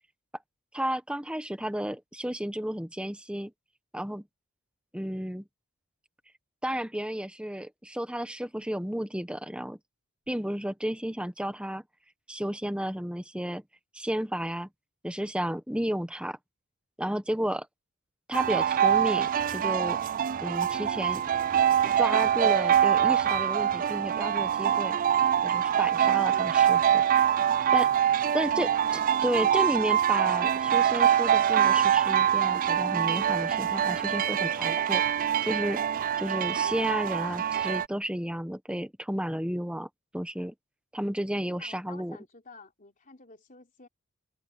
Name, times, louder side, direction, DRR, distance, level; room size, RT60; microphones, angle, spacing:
voice 1, 0.7-3.5 3.9-4.2 4.9-5.4 6.6-9.8 10.3-11.8 12.3-13.6 13.9-14.7 15.0-16.4 17.0-17.7 18.3-20.0 20.4-21.2 22.0-25.0 25.4-27.0 27.7-27.9 28.3-28.7 29.2-35.0 35.4-35.8 36.2-40.5 40.9-42.2, equal, 5° right, 1.1 m, -32 dB
sound 1, 18.3-37.9, right 9 dB, 40° right, 0.3 m, -24 dB
voice 2, 28.1-28.9 41.6-43.9, left 3 dB, 35° left, 3.7 m, -51 dB
head